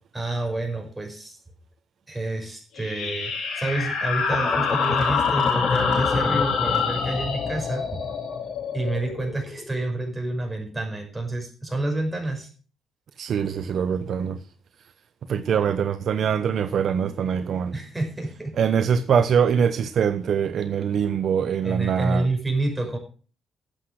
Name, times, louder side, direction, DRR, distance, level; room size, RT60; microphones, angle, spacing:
voice 1, 0.1-1.4 2.1-8.0 8.7-12.5 17.7-18.6 21.6-23.0, right 2 dB, 10° right, 6.3 m, -29 dB
sound 1, 2.7-10.0, left 5 dB, 80° left, 6.8 m, -27 dB
sound 2, 4.3-9.3, left 4 dB, 35° left, 0.7 m, -29 dB
voice 2, 13.2-14.4 15.3-17.7 18.6-22.3, right 7 dB, 60° right, 0.9 m, -23 dB
12.0 x 8.2 x 6.4 m
cardioid pair, 90°, 0 cm